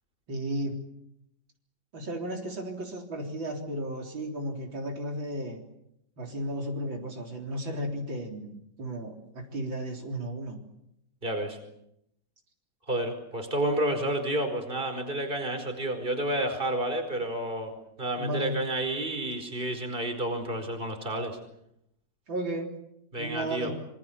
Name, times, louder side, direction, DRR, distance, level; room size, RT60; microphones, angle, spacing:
voice 1, 0.3-0.8 1.9-5.6 6.2-10.6 18.2-18.6 22.3-22.7 23.2-23.8, right 1 dB, 75° right, 1 dB, 4.5 m, -34 dB
voice 2, 11.2-11.6 12.9-17.7 18.0-21.4 23.1-23.7, right 1 dB, 25° right, 5 dB, 4.9 m, -30 dB
27.5 x 25.0 x 7.2 m, 0.78 s
omnidirectional pair, 2.1 m